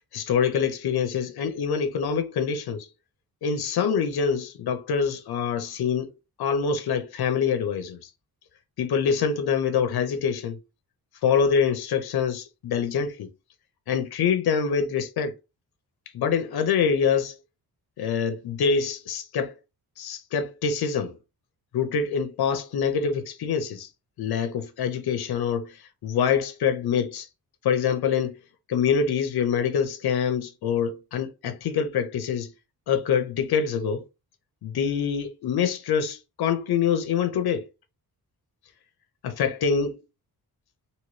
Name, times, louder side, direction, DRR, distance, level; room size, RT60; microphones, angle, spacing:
voice 1, 0.1-2.9 3.4-6.1 6.4-8.0 8.8-10.6 11.2-13.3 13.9-15.3 16.1-17.3 18.0-19.5 20.0-21.1 21.7-23.9 24.2-25.7 26.0-27.3 27.6-28.3 28.7-32.5 32.9-34.0 34.6-37.7 39.2-40.0, left 6 dB, 80° left, 0.7 m, -25 dB
3.0 x 2.8 x 3.1 m
wide cardioid pair, 145°, 37 cm